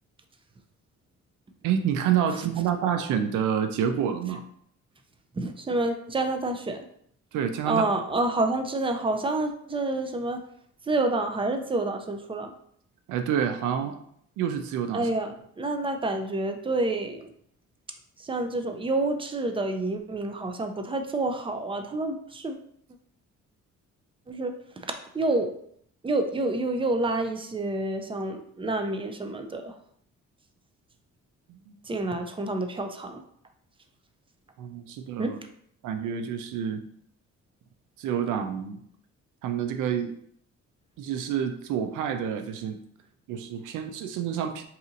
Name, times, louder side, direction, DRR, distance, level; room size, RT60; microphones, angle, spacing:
voice 1, 1.6-4.4 7.3-7.8 13.1-14.0 14.4-15.1 31.5-31.7 34.6-35.4 35.8-36.8 38.0-38.8 39.4-40.1 41.0-42.8 43.3-44.6, right 8 dB, 85° right, 8 dB, 0.5 m, -28 dB
voice 2, 5.4-6.8 7.7-10.4 10.9-12.5 14.9-15.3 15.6-17.3 18.2-22.6 24.3-24.5 25.1-25.5 26.0-29.7 31.9-33.2 35.2-35.3, right 2 dB, 20° right, 6 dB, 0.4 m, -28 dB
2.7 x 2.5 x 3.9 m, 0.66 s
cardioid pair, 90°, 30 cm